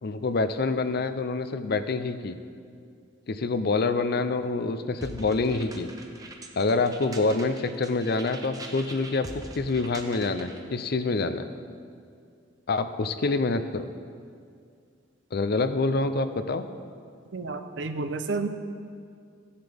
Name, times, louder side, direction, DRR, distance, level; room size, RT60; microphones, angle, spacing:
voice 1, 0.0-2.4 3.3-5.9 6.6-9.3 9.6-11.5 12.7-13.8 15.3-16.6, left 3 dB, 55° left, 10 dB, 0.5 m, -26 dB
sound 1, 5.0-10.6, right 2 dB, 20° right, 0.8 m, -43 dB
voice 2, 17.3-18.5, right 3 dB, 75° right, 8 dB, 0.7 m, -30 dB
15.0 x 9.7 x 3.5 m, 2.2 s
head